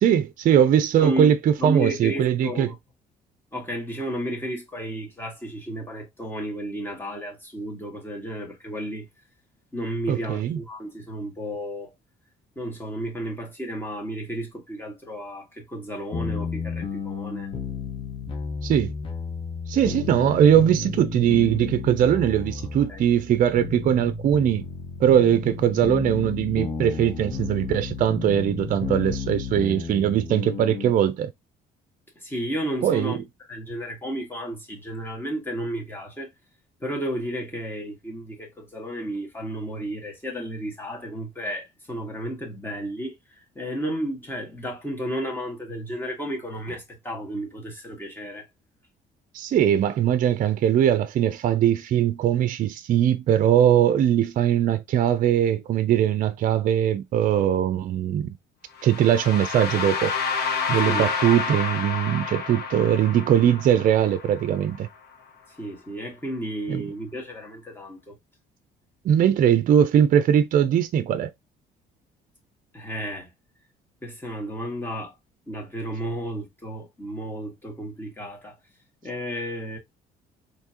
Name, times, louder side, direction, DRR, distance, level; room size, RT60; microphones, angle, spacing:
voice 1, 0.0-2.7 10.1-10.6 18.6-18.9 19.7-24.7 25.0-31.3 32.8-33.2 49.3-58.3 58.8-60.1 60.7-64.9 66.7-66.9 69.0-71.3, right 10 dB, 55° right, 0.5 m, -21 dB
voice 2, 1.0-1.3 1.6-2.8 3.5-9.1 9.7-11.9 12.6-17.5 22.9-23.1 32.2-33.2 33.5-36.3 36.8-48.5 60.9-61.1 65.6-68.2 72.7-73.3 74.0-75.1 75.5-78.6 79.0-79.8, equal, 10° left, 2.0 m, -33 dB
sound 1, 16.1-30.9, left 5 dB, 30° left, 1.3 m, -32 dB
sound 2, 58.8-64.8, left 5 dB, 70° left, 1.5 m, -29 dB
4.4 x 3.2 x 2.9 m
cardioid pair, 110°, 17 cm